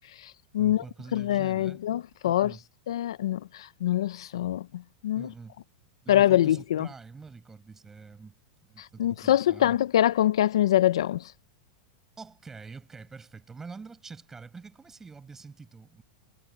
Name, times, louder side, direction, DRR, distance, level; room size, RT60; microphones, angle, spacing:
voice 1, 0.5-1.8 2.2-2.6 5.2-5.6 6.0-8.3 8.7-9.8 12.2-16.0, right 4 dB, 15° right, 7.6 m, -45 dB
voice 2, 1.1-2.5 2.9-4.7 5.0-5.3 6.1-6.9 9.0-11.2, left 12 dB, 80° left, 0.6 m, -24 dB
hypercardioid pair, 120°, 3 cm